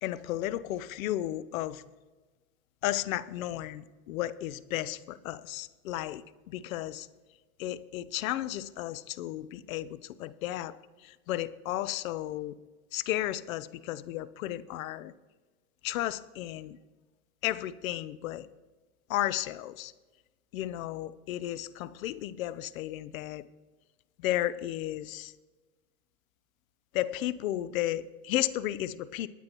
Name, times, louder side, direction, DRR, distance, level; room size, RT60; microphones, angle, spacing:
voice 1, 0.0-1.8 2.8-7.1 7.6-12.6 12.9-15.1 15.8-16.8 17.4-18.5 19.1-19.9 20.5-23.5 24.2-25.3 26.9-29.3, left 14 dB, 70° left, 16 dB, 0.7 m, -33 dB
20.5 x 9.4 x 3.0 m, 1.3 s
hypercardioid pair, 125°, 42 cm